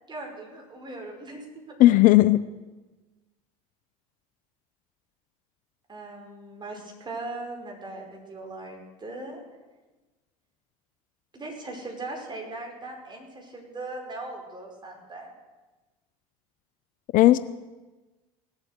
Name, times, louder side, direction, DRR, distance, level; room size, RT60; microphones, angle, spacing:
voice 1, 0.1-1.8 5.9-9.4 11.3-15.3, right 2 dB, 25° right, 1 dB, 5.1 m, -39 dB
voice 2, 1.8-2.4 17.1-17.4, left 16 dB, 50° left, 16 dB, 0.5 m, -16 dB
19.0 x 8.2 x 8.1 m, 1.2 s
hypercardioid pair, 80°, 18 cm